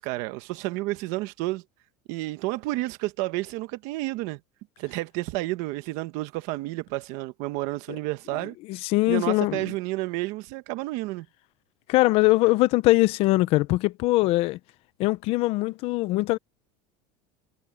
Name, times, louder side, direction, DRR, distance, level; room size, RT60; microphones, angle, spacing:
voice 1, 0.0-1.6 2.1-4.4 4.8-8.5 9.1-11.3, right 19 dB, 50° right, 1.2 m, -30 dB
voice 2, 8.7-9.6 11.9-14.6 15.0-16.4, left 20 dB, 35° left, 0.5 m, -22 dB
supercardioid pair, 175°, 17 cm